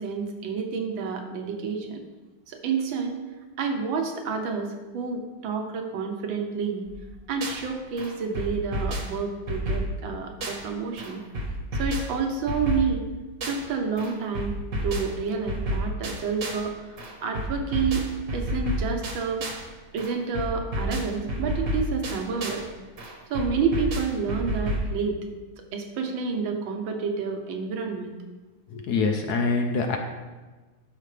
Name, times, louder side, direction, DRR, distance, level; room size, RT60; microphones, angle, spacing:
voice 1, 0.0-2.0 2.5-3.2 3.6-4.7 4.9-6.9 7.3-11.2 11.8-13.0 13.5-14.5 14.8-16.7 17.2-19.4 19.9-22.6 23.3-25.2 25.7-28.1, right 5 dB, 70° right, 4 dB, 1.7 m, -29 dB
sound 1, 6.9-7.7 8.0-10.7 11.0-13.7 14.0-16.7 17.0-19.7 20.0-22.7 23.0-24.9, right 1 dB, 40° right, 1.4 m, -31 dB
voice 2, 28.7-30.0, left 4 dB, 65° left, 4 dB, 1.0 m, -25 dB
12.5 x 5.5 x 3.3 m, 1.3 s
omnidirectional pair, 2.4 m